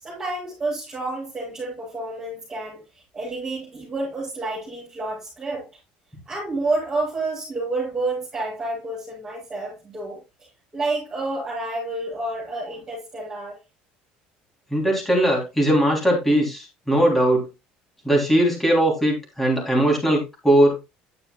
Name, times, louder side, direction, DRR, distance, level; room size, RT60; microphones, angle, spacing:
voice 1, 0.0-2.8 3.1-5.7 6.2-10.2 10.7-13.6, right 2 dB, 20° right, 6.8 m, -29 dB
voice 2, 14.7-17.5 18.1-20.7, right 1 dB, 5° left, 3.5 m, -19 dB
10.5 x 8.7 x 2.4 m
cardioid pair, 160°, 3 cm